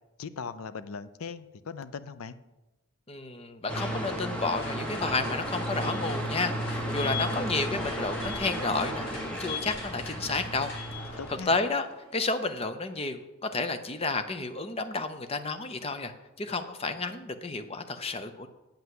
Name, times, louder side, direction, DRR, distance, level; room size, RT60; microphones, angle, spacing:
voice 1, 0.2-2.4 11.2-11.5, left 5 dB, 80° left, 14 dB, 0.5 m, -39 dB
voice 2, 3.1-11.9 12.1-18.5, left 3 dB, 25° left, 9 dB, 0.6 m, -31 dB
sound 1, 3.7-11.4, equal, 5° left, 1.3 m, -33 dB
sound 2, 4.6-12.5, left 2 dB, 55° left, 2.2 m, -45 dB
8.7 x 5.7 x 7.8 m, 1.0 s
head